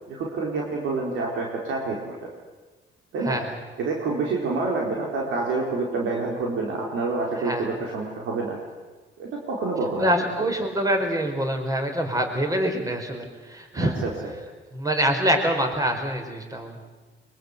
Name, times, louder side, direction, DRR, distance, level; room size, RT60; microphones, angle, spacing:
voice 1, 0.1-2.3 3.1-3.4 3.8-8.6 9.2-10.1 10.4-10.5 13.7-14.1, right 3 dB, 80° right, -2 dB, 4.5 m, -27 dB
voice 2, 3.2-3.6 7.4-7.6 10.0-13.9 14.7-16.8, equal, 15° right, 4 dB, 4.8 m, -25 dB
23.5 x 23.0 x 8.2 m, 1.3 s
cardioid pair, 90°, 20 cm